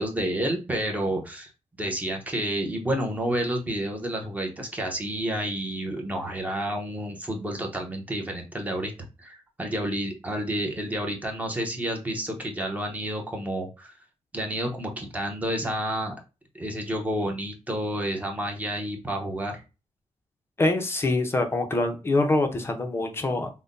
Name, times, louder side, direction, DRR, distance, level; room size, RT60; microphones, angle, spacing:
voice 1, 0.0-1.5 1.8-8.9 9.2-13.9 14.3-16.1 16.5-19.6, right 1 dB, 10° right, 1 dB, 0.8 m, -30 dB
voice 2, 20.6-23.5, left 2 dB, 20° left, 5 dB, 0.6 m, -24 dB
5.5 x 2.2 x 2.5 m, 0.29 s
wide cardioid pair, 175°, 12 cm